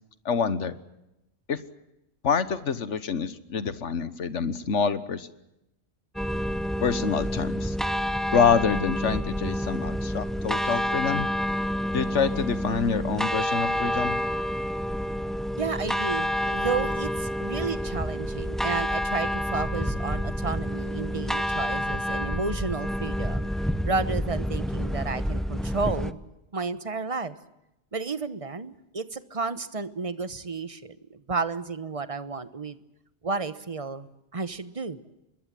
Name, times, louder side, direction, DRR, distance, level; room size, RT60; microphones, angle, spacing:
voice 1, 0.2-0.7 1.5-1.6 2.2-5.3 6.8-7.8 8.3-11.3 11.9-14.2, left 6 dB, 85° left, 14 dB, 1.6 m, -26 dB
sound 1, 6.1-26.1, equal, ahead, 0.6 m, -28 dB
voice 2, 15.6-23.5 23.8-26.2 26.5-27.4 27.9-32.8 33.2-34.1 34.3-35.0, right 4 dB, 30° right, 13 dB, 1.2 m, -32 dB
26.0 x 21.5 x 7.7 m, 0.90 s
omnidirectional pair, 1.2 m